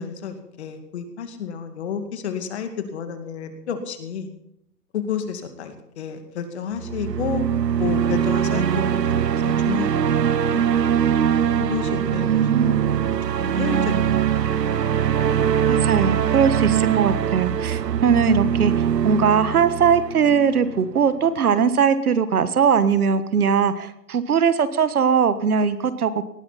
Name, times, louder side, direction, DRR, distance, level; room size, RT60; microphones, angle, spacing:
voice 1, 0.0-4.3 4.9-7.4 7.8-8.8 9.1-10.1 10.5-10.6 11.6-12.8 13.4-14.1 14.6-14.7, left 7 dB, 40° left, 7 dB, 2.4 m, -31 dB
sound 1, 6.7-20.9, right 9 dB, 80° right, 1.1 m, -22 dB
voice 2, 12.2-12.8 15.7-26.2, right 6 dB, 65° right, 13 dB, 1.5 m, -20 dB
19.0 x 15.5 x 4.2 m, 0.77 s
hypercardioid pair, 155°, 49 cm